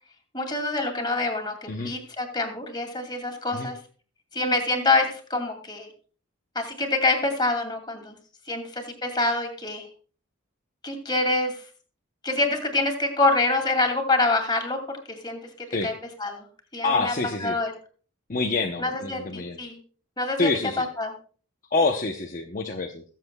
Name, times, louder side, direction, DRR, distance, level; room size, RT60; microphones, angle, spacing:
voice 1, 0.3-3.8 4.3-5.9 6.5-8.2 8.5-9.9 10.8-11.6 12.2-14.8 15.1-15.9 16.2-16.5 16.7-17.1 17.4-17.7 18.8-19.8 20.2-20.5 20.8-21.1, left 2 dB, 20° left, 3 dB, 2.5 m, -26 dB
voice 2, 16.8-17.6 18.3-19.6 20.4-20.9 21.7-23.0, left 3 dB, 40° left, 2 dB, 0.8 m, -26 dB
22.0 x 7.5 x 2.3 m, 0.40 s
head